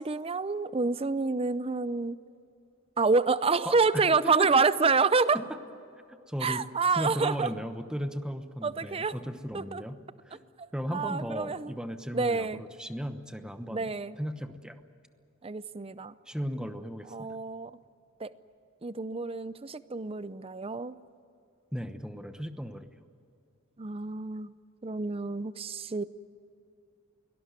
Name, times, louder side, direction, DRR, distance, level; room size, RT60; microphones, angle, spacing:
voice 1, 0.0-2.2 3.0-5.4 6.4-7.5 8.6-9.1 9.5-9.8 10.6-11.7 12.1-12.6 13.7-14.2 15.4-16.1 17.1-17.7 18.2-18.3 18.8-21.0 23.8-24.5 24.8-26.0, right 4 dB, 25° right, 15 dB, 0.5 m, -28 dB
voice 2, 3.6-4.5 5.3-5.6 6.1-6.7 6.9-10.0 10.2-10.4 10.7-14.8 16.3-17.4 21.7-22.9, equal, 5° right, 9 dB, 1.0 m, -36 dB
23.5 x 18.5 x 9.6 m, 2.6 s
head